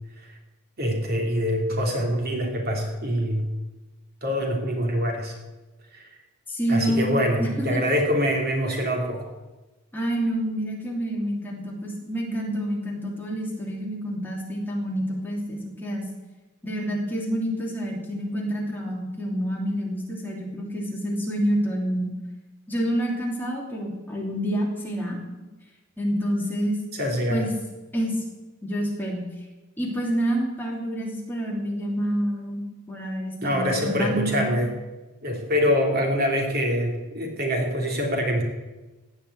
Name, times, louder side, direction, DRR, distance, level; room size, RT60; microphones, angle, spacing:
voice 1, 0.8-3.5 4.2-5.3 5.9-6.1 6.7-9.3 27.0-27.5 33.4-34.7 35.2-38.4, equal, 45° right, 1 dB, 2.9 m, -24 dB
voice 2, 6.5-7.8 9.9-16.0 16.6-22.1 22.7-25.2 26.0-26.8 27.3-27.5 27.9-28.2 28.6-29.2 29.8-34.5, equal, 10° left, -3 dB, 2.9 m, -28 dB
17.0 x 5.7 x 9.5 m, 1.1 s
head